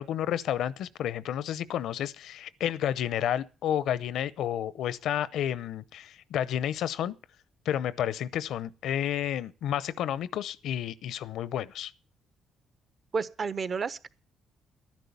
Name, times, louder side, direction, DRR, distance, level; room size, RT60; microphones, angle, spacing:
voice 1, 0.0-7.1 7.7-11.9, left 10 dB, 80° left, 0.7 m, -31 dB
voice 2, 13.1-14.1, right 5 dB, 45° right, 1.0 m, -31 dB
12.5 x 10.5 x 6.9 m
cardioid pair, 90°, 0 cm